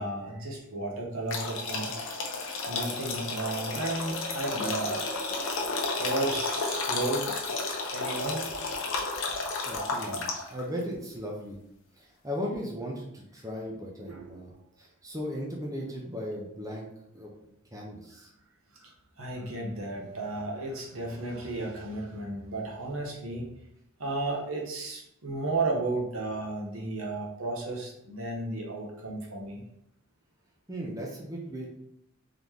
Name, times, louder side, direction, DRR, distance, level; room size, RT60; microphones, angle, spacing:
voice 1, 0.0-1.9 2.7-5.1 6.0-7.3 7.9-8.5 14.1-14.5 18.7-18.9 19.2-23.5 24.0-29.6, right 2 dB, 65° right, -1 dB, 1.0 m, -33 dB
sound 1, 1.3-10.6, left 3 dB, 60° left, 0.7 m, -32 dB
voice 2, 9.7-11.6 12.0-14.5 14.8-16.9 17.1-17.3 17.7-18.3 30.7-31.7, equal, 15° right, -2 dB, 0.6 m, -37 dB
3.9 x 3.1 x 3.5 m, 0.77 s
head